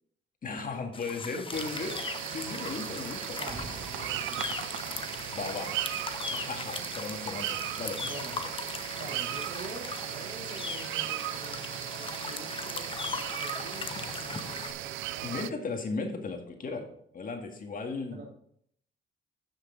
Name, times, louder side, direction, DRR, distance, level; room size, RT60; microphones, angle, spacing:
voice 1, 0.4-2.0 2.3-3.4 5.3-5.7 6.2-8.0 15.2-16.9 17.1-18.2, left 4 dB, 45° left, 3 dB, 1.8 m, -36 dB
sound 1, 0.9-14.7, left 4 dB, 25° left, 0.8 m, -39 dB
sound 2, 1.5-15.5, right 14 dB, 85° right, 0.4 m, -37 dB
voice 2, 3.3-5.0 5.5-5.7 8.0-8.4 8.9-16.0 18.0-18.3, right 2 dB, 65° right, -1 dB, 2.9 m, -46 dB
sound 3, 3.5-7.2 7.6-7.7, right 2 dB, 30° right, 1.6 m, -48 dB
10.0 x 6.5 x 3.8 m, 0.66 s
cardioid pair, 90°, 20 cm